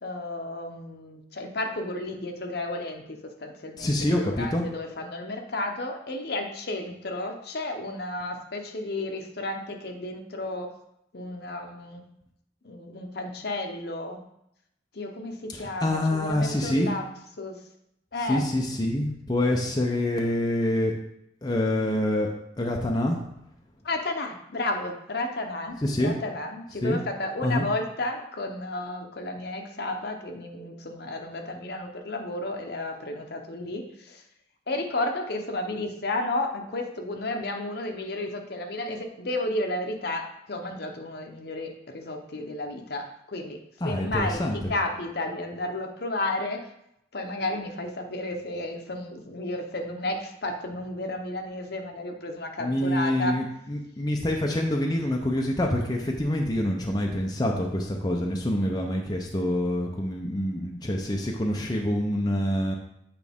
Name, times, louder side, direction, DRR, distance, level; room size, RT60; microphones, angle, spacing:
voice 1, 0.0-10.7 11.1-12.1 12.6-14.2 14.9-17.0 17.4-17.6 18.1-18.5 23.8-25.8 26.0-34.2 34.7-43.6 43.8-46.7 47.1-53.4, left 2 dB, 55° left, 4 dB, 0.8 m, -32 dB
voice 2, 3.8-4.7 15.5-16.9 18.3-20.9 21.4-22.3 22.6-23.2 25.8-26.1 26.8-27.0 27.4-27.7 43.8-44.7 52.6-62.8, left 1 dB, 20° left, 0 dB, 0.6 m, -26 dB
8.4 x 4.7 x 3.6 m, 0.79 s
head